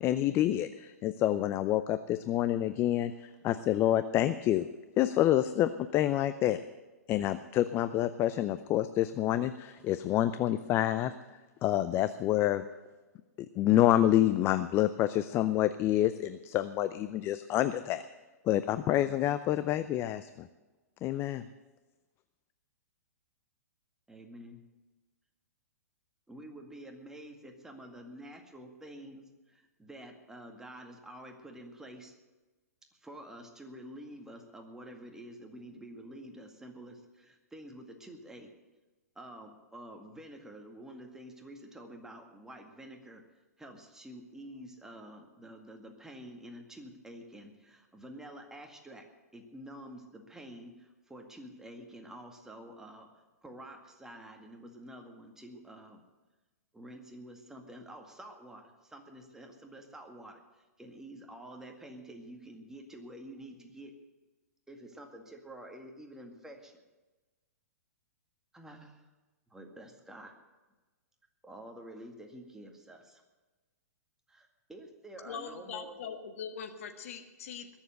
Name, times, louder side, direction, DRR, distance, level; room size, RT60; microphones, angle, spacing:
voice 1, 0.0-4.7 5.0-6.6 7.1-11.1 11.6-12.6 13.6-18.0 18.4-20.5 21.0-21.5, left 13 dB, 30° left, 12 dB, 0.5 m, -28 dB
voice 2, 24.1-24.6 26.3-32.1 33.0-38.5 39.2-43.2 43.6-53.1 53.4-56.0 56.7-64.0 64.7-66.8 68.5-69.0 69.5-70.4 71.4-73.2 74.3-76.0, right 1 dB, 5° right, 3 dB, 2.0 m, -48 dB
voice 3, 75.2-77.7, left 7 dB, 55° left, 7 dB, 1.7 m, -41 dB
21.5 x 7.3 x 7.9 m, 1.2 s
hypercardioid pair, 115°, 9 cm